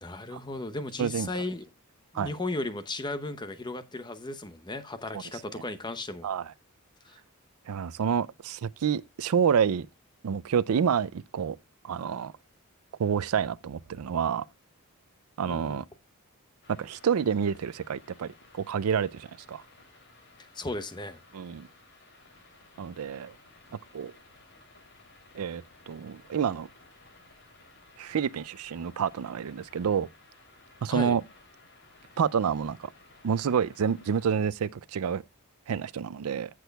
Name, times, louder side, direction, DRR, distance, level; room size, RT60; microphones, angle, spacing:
voice 1, 0.0-1.7 2.1-6.3 7.0-7.2 15.5-15.8 20.5-21.2 30.9-31.2, left 2 dB, 20° left, 0.8 m, -35 dB
voice 2, 7.7-9.9 10.2-11.6 11.8-12.3 13.0-14.5 15.4-15.8 16.7-19.6 21.3-21.7 22.8-23.3 23.9-24.1 25.3-26.7 28.0-30.1 30.8-31.2 32.2-32.9 33.2-35.2 35.7-36.5, right 7 dB, 75° right, 0.4 m, -28 dB
sound 1, 16.6-34.3, left 3 dB, 55° left, 3.0 m, -57 dB
15.0 x 6.2 x 2.3 m
head